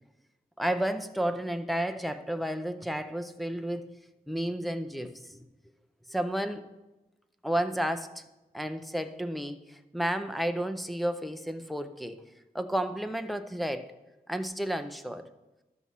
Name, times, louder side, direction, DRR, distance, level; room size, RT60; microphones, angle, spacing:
voice 1, 0.6-3.9 4.3-5.4 6.1-6.6 7.4-8.2 8.5-12.2 12.5-13.9 14.3-15.3, right 1 dB, ahead, 8 dB, 0.5 m, -32 dB
12.5 x 4.2 x 7.4 m, 1.1 s
wide cardioid pair, 130°, 16 cm